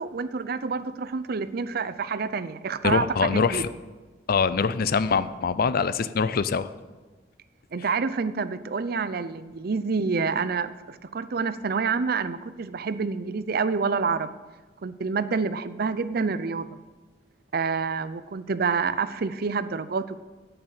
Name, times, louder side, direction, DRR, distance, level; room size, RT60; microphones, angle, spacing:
voice 1, 0.0-3.6 7.7-14.4 14.8-16.8 17.5-20.2, right 5 dB, 55° right, 14 dB, 0.5 m, -28 dB
voice 2, 2.8-3.7 4.3-6.7, left 5 dB, 55° left, 15 dB, 0.5 m, -24 dB
8.9 x 8.8 x 7.5 m, 1.3 s
head